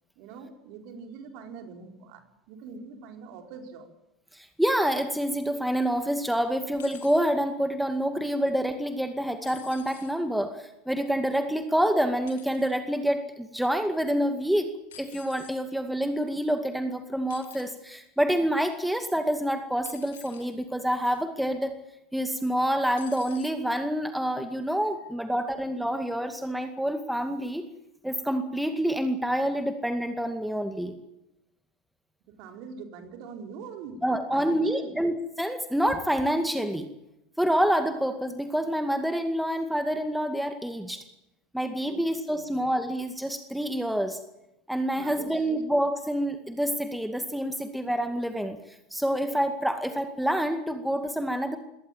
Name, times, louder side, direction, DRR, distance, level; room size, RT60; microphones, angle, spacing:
voice 1, 0.2-3.9 32.2-35.0 41.8-42.6 44.9-45.5, right 5 dB, 55° right, 5 dB, 4.3 m, -43 dB
voice 2, 4.3-14.7 15.0-21.8 22.1-27.6 28.0-30.9 34.0-36.9 37.4-41.0 41.5-44.2 44.7-48.6 48.9-51.6, equal, ahead, 7 dB, 2.1 m, -27 dB
sound 1, 6.8-7.3 9.4-10.2 12.3-12.7 14.9-15.6 17.3-17.8 19.8-20.6 21.1-21.4 23.0-23.6 24.6-24.7, left 10 dB, 70° left, 3.1 m, -49 dB
21.5 x 18.0 x 8.9 m, 0.87 s
figure-of-eight pair, 85°, 0 cm